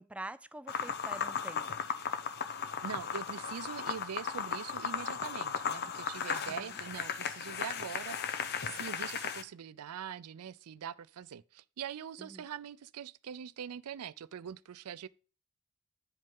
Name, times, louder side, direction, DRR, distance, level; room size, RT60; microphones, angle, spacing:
voice 1, 0.0-1.7 6.5-6.8 12.2-12.5, right 1 dB, 5° right, 0.3 m, -46 dB
sound 1, 0.7-9.4, left 7 dB, 50° left, 0.7 m, -36 dB
voice 2, 2.8-15.1, right 8 dB, 85° right, 0.4 m, -43 dB
9.4 x 5.2 x 3.7 m
head